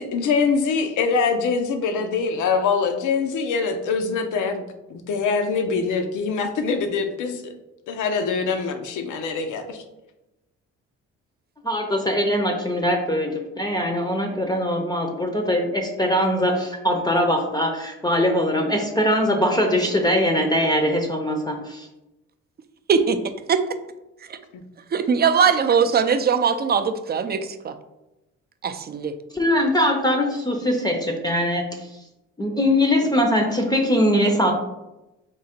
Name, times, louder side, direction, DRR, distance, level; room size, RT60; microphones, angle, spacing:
voice 1, 0.0-4.6 4.9-7.5 7.9-9.8 24.5-24.6, left 5 dB, 80° left, 7 dB, 0.7 m, -24 dB
voice 2, 11.6-21.9 29.3-31.7 32.4-34.5, equal, 15° left, 2 dB, 0.6 m, -21 dB
voice 3, 22.9-23.2 23.5-23.6 24.3-24.4 24.9-27.7 28.6-29.2, right 6 dB, 35° right, 9 dB, 0.4 m, -20 dB
3.7 x 2.8 x 4.3 m, 0.95 s
cardioid pair, 90°, 30 cm